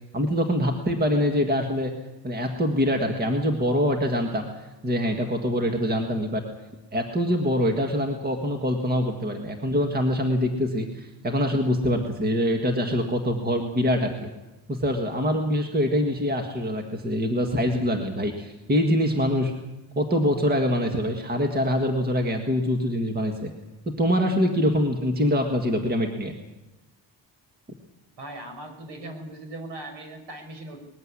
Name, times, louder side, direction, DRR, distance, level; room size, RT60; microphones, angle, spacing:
voice 1, 0.1-1.9 2.2-4.5 4.8-6.4 6.9-14.3 14.7-19.5 20.0-23.5 23.9-26.3, equal, 20° right, 4 dB, 1.8 m, -24 dB
voice 2, 28.2-30.8, right 1 dB, 65° right, 6 dB, 5.2 m, -39 dB
20.5 x 15.0 x 9.8 m, 1.0 s
cardioid pair, 175°, 44 cm